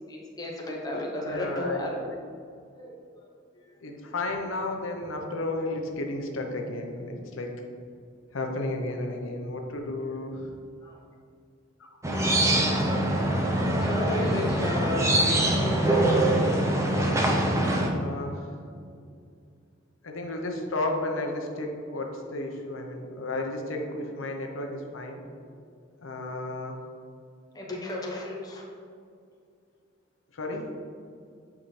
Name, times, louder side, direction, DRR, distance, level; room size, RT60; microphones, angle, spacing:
voice 1, 0.1-1.9 2.7-3.0 3.6-3.8 10.8-11.0 13.8-15.6 27.5-28.6, left 1 dB, 20° left, -2 dB, 0.9 m, -33 dB
voice 2, 1.2-2.2 3.8-7.5 8.3-10.5 11.8-11.9 17.9-18.5 20.0-25.5 26.0-26.8 30.3-30.7, left 2 dB, 85° left, 2 dB, 0.8 m, -33 dB
sound 1, 12.0-17.9, right 1 dB, 15° right, 0.6 m, -23 dB
8.5 x 4.8 x 3.2 m, 2.3 s
head